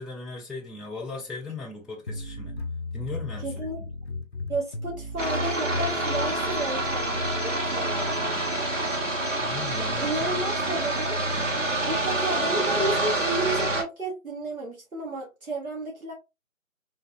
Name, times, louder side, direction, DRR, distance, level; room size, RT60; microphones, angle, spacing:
voice 1, 0.0-2.6 2.9-3.9 9.4-10.8, left 3 dB, ahead, 0.4 m, -38 dB
sound 1, 2.1-7.4, left 3 dB, 50° left, 0.5 m, -35 dB
voice 2, 3.4-3.8 4.5-8.4 10.0-11.2 11.9-16.1, right 2 dB, 90° right, 1.1 m, -32 dB
sound 2, 5.2-13.8, right 2 dB, 65° right, 1.0 m, -27 dB
3.2 x 2.2 x 2.5 m
figure-of-eight pair, 170°, 41 cm